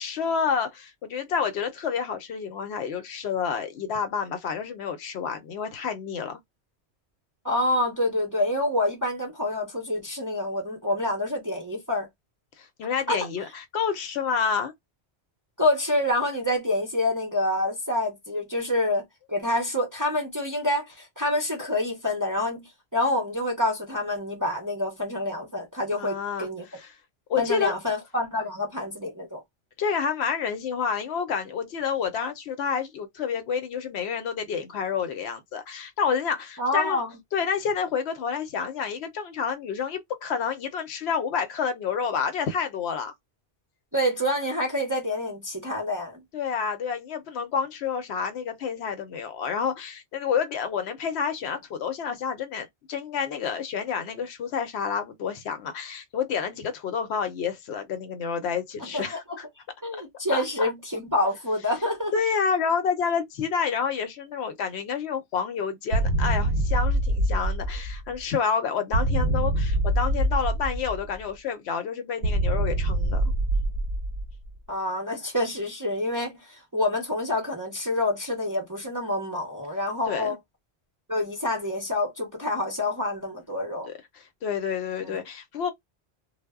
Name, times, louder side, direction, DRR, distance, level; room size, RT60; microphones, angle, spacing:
voice 1, 0.0-6.4 12.6-14.7 25.9-26.9 27.3-27.7 29.8-37.0 37.3-43.1 46.3-59.4 60.3-60.4 62.1-73.3 80.1-80.4 83.8-83.9 84.4-85.7, left 6 dB, 75° left, 0.8 m, -29 dB
voice 2, 7.4-12.1 13.1-13.2 15.6-19.0 19.3-26.7 27.4-29.4 36.6-37.1 43.9-46.2 58.9-59.0 59.8-62.1 74.7-80.4 81.1-83.9 85.0-85.2, left 1 dB, 25° right, 0.5 m, -27 dB
sound 1, 65.9-68.2 68.9-71.2 72.2-74.5, right 1 dB, 75° right, 0.8 m, -25 dB
2.0 x 2.0 x 3.4 m
omnidirectional pair, 1.1 m